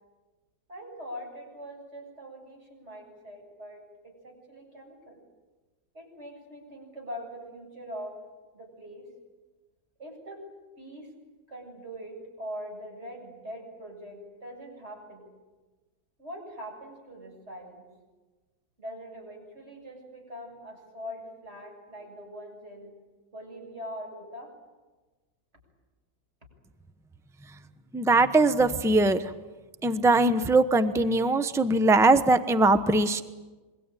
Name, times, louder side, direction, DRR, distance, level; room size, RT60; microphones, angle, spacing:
voice 1, 0.7-5.2 5.9-8.2 8.5-9.1 10.0-10.4 10.8-11.1 11.5-15.3 16.2-17.9 18.8-22.9 23.3-24.5, equal, 35° right, 1 dB, 8.1 m, -42 dB
voice 2, 27.9-29.3 29.8-33.2, right 2 dB, 5° right, 10 dB, 0.6 m, -21 dB
26.5 x 23.0 x 9.2 m, 1.2 s
omnidirectional pair, 2.1 m